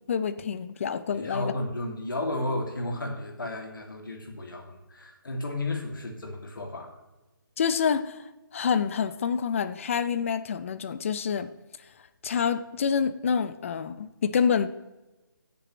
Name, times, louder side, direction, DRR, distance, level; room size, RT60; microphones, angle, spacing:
voice 1, 0.1-1.5 7.6-8.2 8.5-11.5 12.2-14.7, left 6 dB, 35° left, 13 dB, 0.6 m, -27 dB
voice 2, 1.1-6.9, left 2 dB, 70° left, 2 dB, 2.4 m, -33 dB
15.0 x 6.9 x 3.1 m, 1.1 s
figure-of-eight pair, 155°, 11 cm